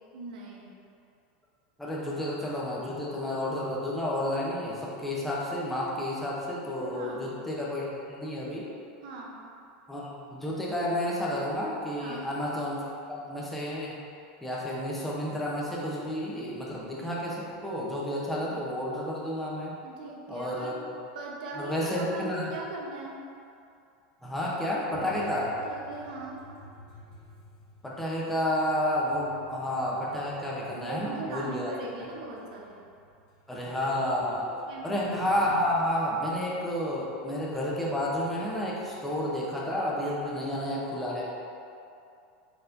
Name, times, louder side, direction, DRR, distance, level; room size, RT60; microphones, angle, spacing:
voice 1, 0.1-0.8 6.8-7.3 9.0-9.4 11.9-12.3 19.8-20.8 21.1-23.3 25.5-26.5 30.7-32.8 34.5-35.1 40.2-40.4, right 3 dB, 85° right, -1 dB, 0.7 m, -40 dB
voice 2, 1.8-8.7 9.9-14.0 14.4-19.7 20.3-20.9 21.6-22.5 24.2-25.5 27.8-31.7 33.5-34.5 34.8-41.3, left 1 dB, 5° left, -5 dB, 0.7 m, -31 dB
sound 1, 24.9-39.1, left 2 dB, 50° left, 0.9 m, -54 dB
4.4 x 4.0 x 2.6 m, 2.5 s
supercardioid pair, 150°, 4 cm